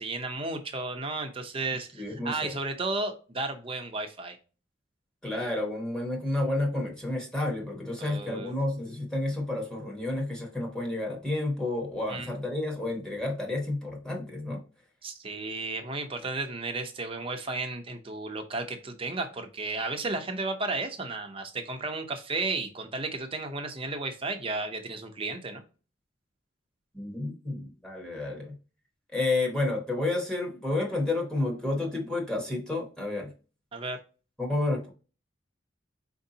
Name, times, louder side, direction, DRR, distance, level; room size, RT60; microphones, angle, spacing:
voice 1, 0.0-4.4 8.0-8.6 12.1-12.3 15.0-25.6 33.7-34.0, right 3 dB, 30° right, 5 dB, 0.7 m, -33 dB
voice 2, 2.0-2.5 5.2-14.6 26.9-28.5 29.1-33.3 34.4-34.9, left 2 dB, 5° left, -1 dB, 1.0 m, -30 dB
4.6 x 2.7 x 3.9 m, 0.36 s
head